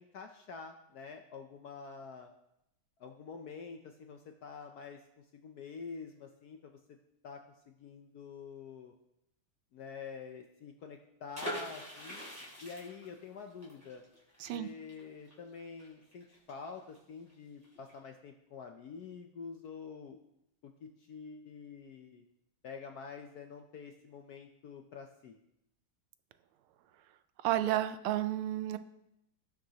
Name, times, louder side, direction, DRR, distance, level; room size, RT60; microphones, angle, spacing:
voice 1, 0.0-2.3 3.0-6.8 7.2-8.9 9.7-12.2 12.6-14.0 14.5-20.2 20.6-22.2 22.6-25.4, left 5 dB, 70° left, 5 dB, 0.9 m, -47 dB
sound 1, 11.3-17.0 17.3-17.4 17.6-17.9, equal, 5° left, 3.5 m, -44 dB
voice 2, 27.4-28.8, right 13 dB, 90° right, 11 dB, 1.5 m, -31 dB
17.5 x 6.4 x 2.9 m, 0.82 s
omnidirectional pair, 2.3 m